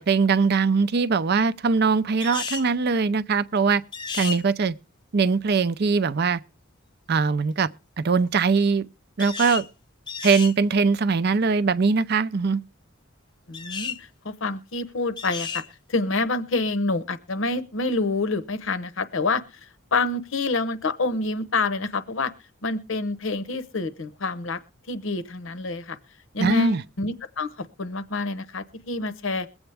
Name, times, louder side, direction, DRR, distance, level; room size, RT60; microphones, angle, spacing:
voice 1, 0.0-3.8 4.2-4.7 5.1-6.4 7.1-7.7 8.0-8.9 9.2-9.6 10.2-12.6 26.4-26.8, right 4 dB, 50° right, 0.5 m, -21 dB
sound 1, 2.2-2.7 3.9-4.4 9.2-9.7 10.1-10.5 13.5-14.0 15.2-15.7, left 5 dB, 20° left, 0.6 m, -32 dB
voice 2, 13.5-15.6 15.9-19.4 19.9-22.3 22.6-24.6 24.9-26.0 26.3-29.5, left 3 dB, 65° left, 0.8 m, -27 dB
21.5 x 8.0 x 3.4 m
head